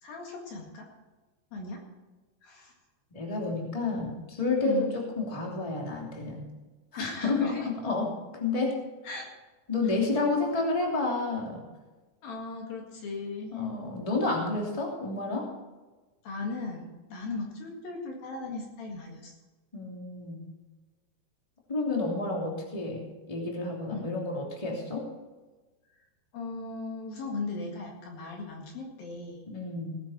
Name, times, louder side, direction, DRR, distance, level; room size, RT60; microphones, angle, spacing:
voice 1, 0.0-0.9 1.5-1.8 2.4-2.7 4.6-4.9 7.0-7.7 9.0-9.3 9.8-10.0 12.2-13.6 16.2-19.4 23.9-24.1 25.9-26.0 26.3-29.5, left 3 dB, 65° left, 0 dB, 3.5 m, -37 dB
voice 2, 3.1-6.5 7.0-8.1 8.4-8.7 9.7-11.6 13.5-15.5 19.7-20.5 21.7-23.0 23.3-25.0 29.5-30.0, left 3 dB, 10° left, -1 dB, 2.2 m, -30 dB
18.5 x 10.0 x 4.4 m, 1.2 s
omnidirectional pair, 4.8 m